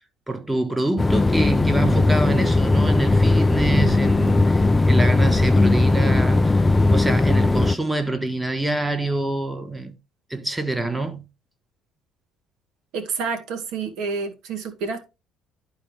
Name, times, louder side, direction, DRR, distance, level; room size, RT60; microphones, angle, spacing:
voice 1, 0.3-6.6 6.9-10.0 10.3-11.2, right 2 dB, 10° right, 1.3 m, -26 dB
sound 1, 1.0-7.8, left 2 dB, 15° left, 0.3 m, -18 dB
voice 2, 12.9-15.0, right 5 dB, 80° right, 2.1 m, -28 dB
11.5 x 3.8 x 3.4 m
cardioid pair, 105°, 0 cm